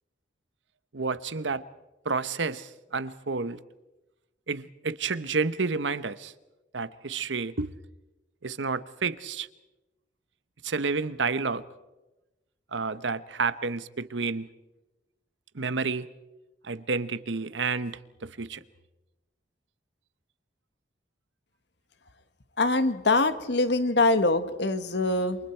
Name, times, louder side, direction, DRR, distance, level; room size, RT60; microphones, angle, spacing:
voice 1, 0.9-1.6 2.0-3.6 4.5-6.3 6.7-7.8 8.4-9.5 10.6-11.6 12.7-14.5 15.5-16.1 16.6-18.6, right 4 dB, 85° right, 1.0 m, -30 dB
voice 2, 22.6-25.4, left 2 dB, 65° left, 1.4 m, -24 dB
28.5 x 26.5 x 4.5 m
head